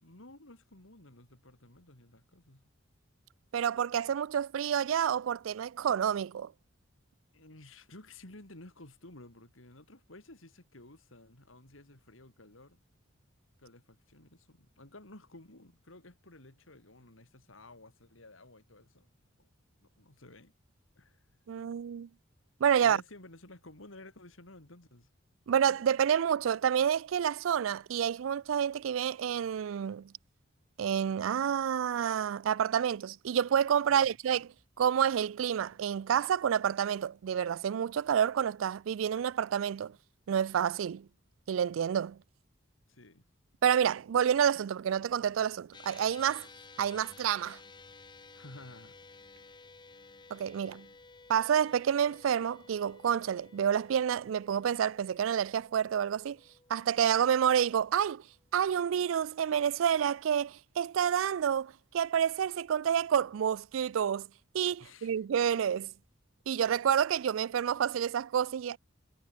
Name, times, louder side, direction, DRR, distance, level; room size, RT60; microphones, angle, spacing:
voice 1, 0.0-2.6 7.3-12.8 13.6-19.1 19.4-19.5 19.8-20.5 21.0-21.2 22.8-25.1 33.9-34.2 42.9-43.3 48.3-49.0 64.8-65.2, left 2 dB, 85° left, 4.0 m, -53 dB
voice 2, 3.5-6.5 21.5-22.1 22.6-23.0 25.5-30.1 30.8-34.5 34.8-40.0 40.3-41.1 41.5-42.2 43.6-46.5 46.8-47.6 50.3-50.9 51.3-56.4 56.7-58.2 58.5-64.3 64.5-65.9 66.5-68.8, right 8 dB, 85° right, 0.4 m, -29 dB
sound 1, 45.7-58.3, left 4 dB, 25° left, 0.9 m, -55 dB
head